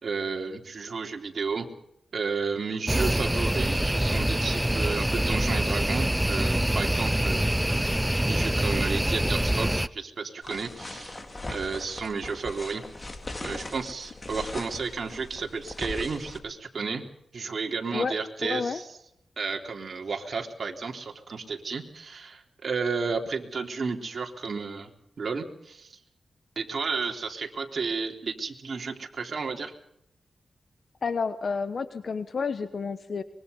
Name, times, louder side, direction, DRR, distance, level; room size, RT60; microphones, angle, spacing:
voice 1, 0.0-1.7 2.1-7.9 8.3-11.2 11.5-12.8 13.4-17.1 17.3-19.0 19.4-24.9 25.2-26.0 26.6-29.7, right 4 dB, 60° right, 3 dB, 3.6 m, -32 dB
sound 1, 2.9-9.9, right 1 dB, 5° right, 0.7 m, -25 dB
sound 2, 10.4-16.4, left 2 dB, 30° left, 3.2 m, -39 dB
voice 2, 18.4-18.8 31.0-33.2, left 5 dB, 60° left, 11 dB, 1.1 m, -30 dB
24.5 x 23.0 x 5.4 m, 0.77 s
cardioid pair, 80°, 0 cm